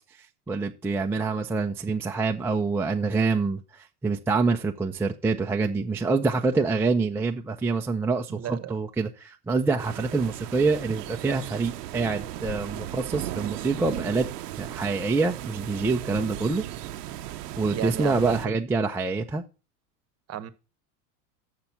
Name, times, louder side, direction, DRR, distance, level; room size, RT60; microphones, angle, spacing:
voice 1, 0.5-3.6 4.0-14.3 14.6-16.6 17.6-19.4, right 4 dB, 5° right, 0.4 m, -26 dB
voice 2, 8.3-8.7 17.7-18.5 20.3-20.5, right 11 dB, 35° right, 1.0 m, -33 dB
sound 1, 9.8-18.5, right 13 dB, 85° right, 0.8 m, -36 dB
6.7 x 5.9 x 7.1 m
supercardioid pair, 110°, 46 cm